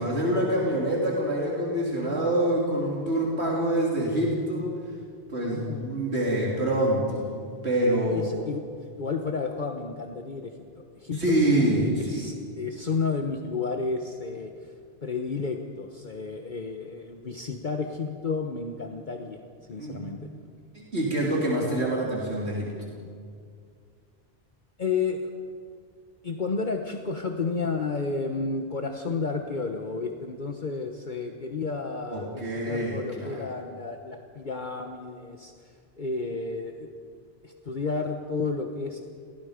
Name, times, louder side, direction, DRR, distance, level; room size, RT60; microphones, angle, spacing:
voice 1, 0.0-4.7 5.3-8.3 11.1-12.3 19.8-20.0 20.7-22.7 32.1-33.5, right 1 dB, 90° right, -4 dB, 3.7 m, -26 dB
voice 2, 5.4-6.0 8.1-8.6 9.0-14.7 15.0-19.4 19.7-20.2 24.8-25.3 26.2-36.9 37.4-39.0, left 4 dB, 50° left, 4 dB, 1.3 m, -32 dB
28.5 x 19.5 x 5.1 m, 2.2 s
omnidirectional pair, 1.1 m